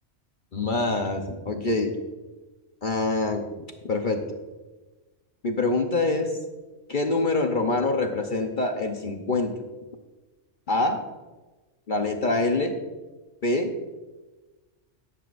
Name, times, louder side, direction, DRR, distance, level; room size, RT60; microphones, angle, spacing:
voice 1, 0.5-2.0 2.8-4.2 5.4-6.4 6.9-9.5 10.7-11.0 11.9-12.8 13.4-13.7, left 2 dB, 45° left, 4 dB, 1.0 m, -25 dB
18.0 x 8.1 x 2.5 m, 1.2 s
omnidirectional pair, 1.2 m